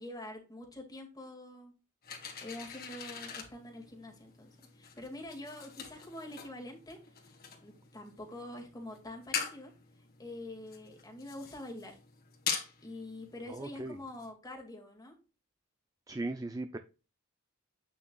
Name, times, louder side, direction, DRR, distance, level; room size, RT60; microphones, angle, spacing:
voice 1, 0.0-1.7 2.4-7.3 7.6-9.7 10.2-12.0 12.8-15.1, left 1 dB, 20° left, 1 dB, 2.0 m, -46 dB
sound 1, 2.0-14.3, left 7 dB, 45° left, 1.6 m, -43 dB
voice 2, 13.5-14.0 16.1-16.8, right 2 dB, 15° right, 8 dB, 0.4 m, -38 dB
8.4 x 6.5 x 2.3 m, 0.32 s
head